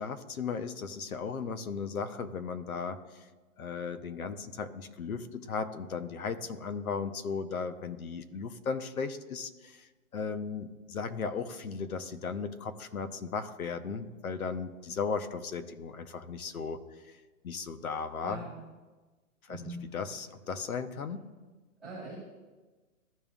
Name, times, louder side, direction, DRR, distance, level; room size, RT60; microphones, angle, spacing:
voice 1, 0.0-3.3 3.6-16.8 17.4-18.5 19.5-21.2, left 5 dB, 75° left, 9 dB, 1.0 m, -36 dB
voice 2, 18.2-18.6 19.5-19.8 21.8-22.1, right 2 dB, ahead, -14 dB, 2.1 m, -42 dB
15.0 x 5.3 x 2.5 m, 1.3 s
hypercardioid pair, 180°, 43 cm